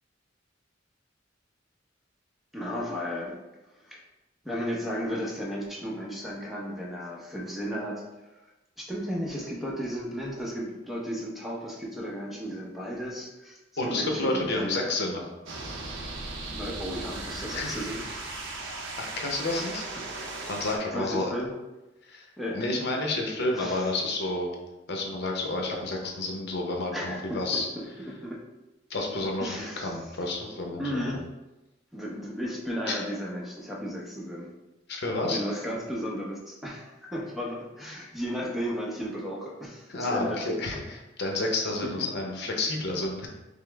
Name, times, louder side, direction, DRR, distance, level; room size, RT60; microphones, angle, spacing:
voice 1, 2.5-3.4 3.8-4.0 4.4-8.0 8.8-14.9 16.5-18.1 19.5-20.1 20.7-21.5 22.4-22.6 23.5-23.9 26.9-28.4 29.4-29.9 30.8-31.2 31.9-34.5 35.3-40.7, equal, ahead, -3 dB, 0.7 m, -34 dB
voice 2, 13.8-15.2 17.5-17.8 19.0-19.8 20.1-21.3 22.0-24.5 24.9-27.7 28.9-29.5 29.8-31.1 32.9-33.0 34.9-35.6 39.9-43.3, left 2 dB, 60° left, 1 dB, 0.7 m, -30 dB
sound 1, 15.5-20.8, right 2 dB, 75° right, 0.6 m, -37 dB
5.4 x 2.0 x 3.3 m, 1.0 s
head